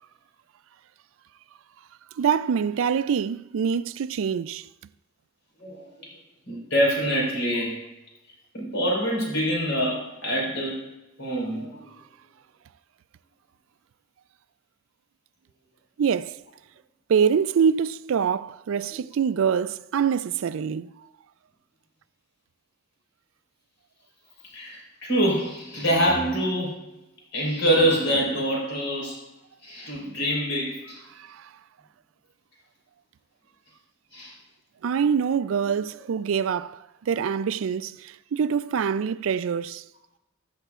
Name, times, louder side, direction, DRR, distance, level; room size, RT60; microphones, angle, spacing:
voice 1, 2.2-4.7 16.0-16.4 17.1-20.9 31.2-31.5 34.8-39.8, right 7 dB, 75° right, 0.4 m, -25 dB
voice 2, 5.6-6.1 6.5-7.8 8.5-10.9 11.2-11.9 24.5-26.7 27.3-29.2 29.6-31.0 34.1-34.3, equal, 75° left, 4.3 m, -25 dB
14.5 x 13.0 x 2.4 m
head